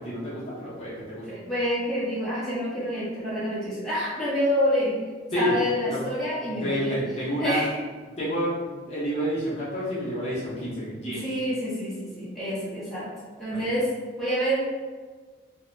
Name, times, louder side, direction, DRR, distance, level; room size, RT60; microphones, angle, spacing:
voice 1, 0.0-1.2 5.3-5.5 5.9-6.0 6.5-7.6 8.2-11.3 13.5-13.6, equal, 30° left, -9 dB, 0.8 m, -29 dB
voice 2, 1.2-5.0 5.3-7.0 7.4-7.7 11.1-13.1 13.4-13.9 14.2-14.6, equal, ahead, -11 dB, 0.9 m, -27 dB
2.7 x 2.2 x 3.7 m, 1.5 s
head